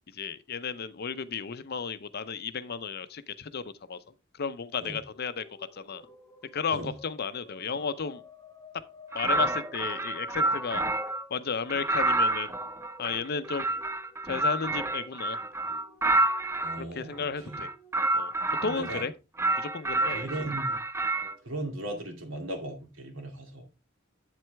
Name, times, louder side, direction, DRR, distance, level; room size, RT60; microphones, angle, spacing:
voice 1, 0.1-4.0 4.3-6.0 6.5-8.2 9.1-10.8 11.3-12.5 13.0-13.7 14.2-15.4 16.8-17.7 18.1-18.3 18.6-19.1 19.6-20.3, left 5 dB, 50° left, 0.6 m, -33 dB
sound 1, 4.7-19.2, left 2 dB, 20° left, 1.3 m, -54 dB
sound 2, 9.1-11.2 11.7-16.8 17.5-19.1 19.4-21.3, right 2 dB, 15° right, 0.5 m, -29 dB
voice 2, 16.6-17.6 18.6-19.0 20.1-20.8 21.4-23.6, right 1 dB, 75° right, 2.4 m, -37 dB
8.4 x 7.7 x 3.3 m
head